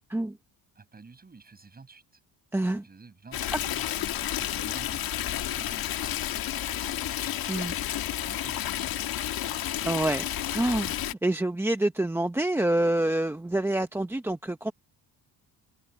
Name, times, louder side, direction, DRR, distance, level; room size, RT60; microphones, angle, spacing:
voice 1, 0.8-2.0 2.8-9.5, right 4 dB, 20° right, 6.0 m, -51 dB
voice 2, 2.5-2.8 7.5-7.7 9.8-10.2 10.5-14.7, right 1 dB, 5° right, 0.8 m, -27 dB
Stream, 3.3-11.1, left 12 dB, 55° left, 1.6 m, -31 dB
cardioid pair, 130°, 42 cm